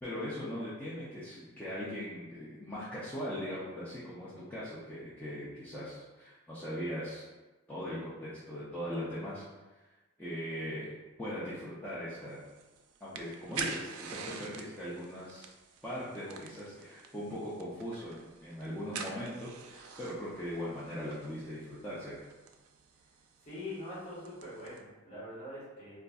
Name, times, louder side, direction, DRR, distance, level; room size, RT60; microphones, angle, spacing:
voice 1, 0.0-7.2 7.7-9.4 10.2-10.9 11.2-12.4 13.0-15.5 15.8-22.1, equal, 10° left, -11 dB, 0.5 m, -40 dB
sound 1, 12.3-24.8, right 5 dB, 85° right, 0.3 m, -46 dB
voice 2, 23.4-25.9, left 1 dB, 35° left, -9 dB, 1.4 m, -43 dB
3.8 x 2.4 x 2.3 m, 1.2 s
head